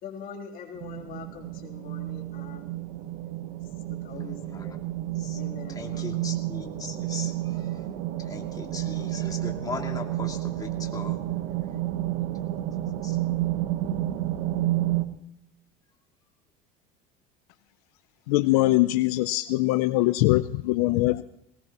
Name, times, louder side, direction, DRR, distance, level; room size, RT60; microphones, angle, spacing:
voice 1, 0.0-2.7 3.9-4.8 5.4-6.3, left 7 dB, 50° left, 2 dB, 3.4 m, -43 dB
sound 1, 0.7-15.0, right 14 dB, 75° right, 1.2 m, -30 dB
voice 2, 5.8-7.7 8.2-11.2 13.0-13.2, left 4 dB, 20° left, 1 dB, 2.7 m, -38 dB
voice 3, 18.3-21.2, left 18 dB, 85° left, 13 dB, 0.6 m, -22 dB
19.5 x 19.0 x 3.0 m, 0.78 s
supercardioid pair, 110°, 19 cm